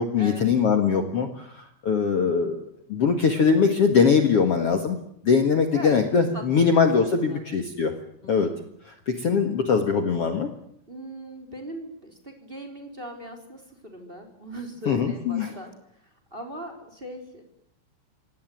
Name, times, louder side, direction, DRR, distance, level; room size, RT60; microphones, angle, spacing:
voice 1, 0.0-2.6 2.9-5.0 5.2-7.9 8.2-8.5 8.8-10.5 14.8-15.5, left 5 dB, 70° left, 6 dB, 1.4 m, -22 dB
voice 2, 5.7-6.8 7.0-7.5 8.2-8.6 10.9-15.7 16.3-17.4, right 1 dB, 10° right, 6 dB, 3.2 m, -39 dB
26.5 x 18.0 x 9.3 m, 0.72 s
omnidirectional pair, 5.5 m